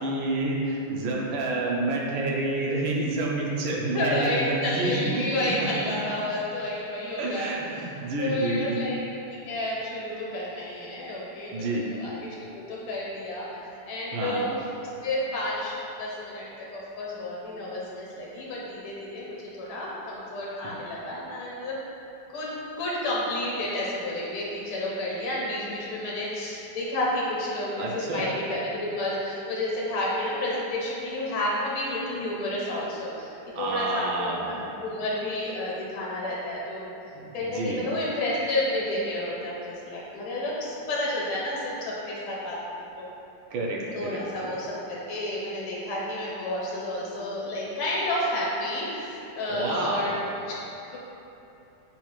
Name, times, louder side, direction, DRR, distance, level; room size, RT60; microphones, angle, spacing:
voice 1, 0.0-5.9 7.2-8.8 11.5-11.9 14.1-14.4 27.8-28.3 33.5-34.7 37.1-37.9 43.5-44.5 49.5-50.1, right 2 dB, 75° right, -3 dB, 1.3 m, -29 dB
voice 2, 3.9-7.9 8.2-9.0 9.5-11.6 12.0-12.1 12.7-14.6 15.0-16.5 16.7-21.8 22.3-22.5 22.8-36.8 37.3-42.6 43.0-43.1 43.9-50.2 50.9-51.0, left 1 dB, 80° left, -5 dB, 1.7 m, -30 dB
7.0 x 2.4 x 3.0 m, 2.9 s
omnidirectional pair, 2.3 m